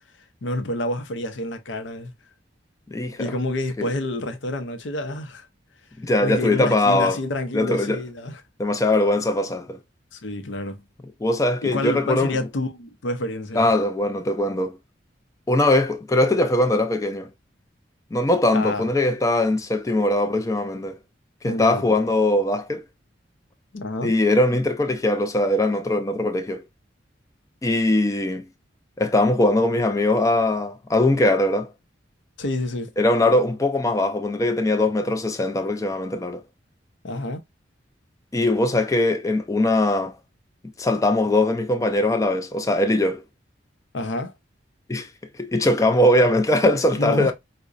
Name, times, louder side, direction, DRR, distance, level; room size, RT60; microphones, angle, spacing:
voice 1, 0.4-2.1 3.2-5.5 6.2-8.4 10.1-10.8 11.6-13.7 18.5-18.9 21.4-21.9 23.7-24.1 32.4-32.9 37.0-37.4 43.9-44.3 46.6-47.3, left 1 dB, 80° left, 0.6 m, -28 dB
voice 2, 2.9-3.3 3.8-3.9 6.0-7.2 7.5-8.0 8.6-9.8 11.2-12.4 13.6-14.8 15.5-17.3 18.1-21.0 21.4-22.8 24.0-26.6 27.6-28.5 29.0-31.7 33.0-36.4 38.3-40.1 40.8-43.2 44.9-45.1 45.4-47.3, left 1 dB, 15° left, 0.4 m, -21 dB
4.7 x 2.1 x 2.5 m
head